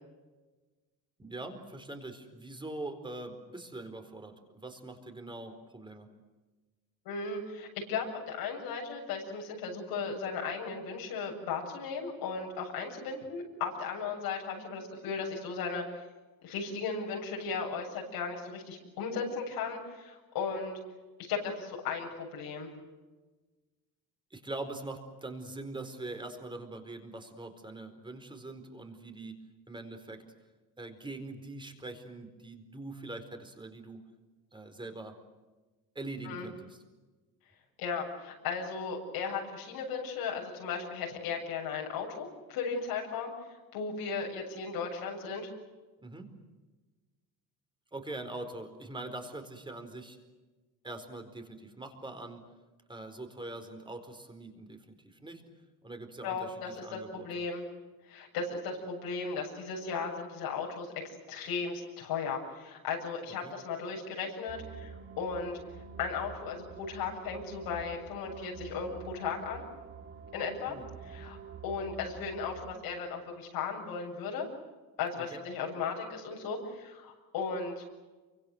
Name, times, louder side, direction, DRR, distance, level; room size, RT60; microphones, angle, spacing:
voice 1, 1.2-6.1 24.3-30.2 30.8-34.0 34.5-35.2 35.9-36.8 46.0-46.3 47.9-50.2 50.8-52.5 52.9-55.4 55.8-57.4 63.4-63.5 70.7-70.8 75.2-75.4, right 2 dB, 15° right, 6 dB, 4.4 m, -43 dB
voice 2, 7.0-16.0 16.4-20.8 21.3-22.7 36.2-36.5 37.8-43.3 43.7-45.5 56.2-57.6 58.1-65.6 66.0-69.6 70.3-70.8 71.0-71.4 71.6-74.5 75.0-77.8, left 5 dB, 85° left, -1 dB, 7.7 m, -36 dB
sound 1, 64.5-72.8, right 6 dB, 35° right, 2.2 m, -47 dB
28.5 x 25.0 x 7.9 m, 1.2 s
cardioid pair, 135°, 36 cm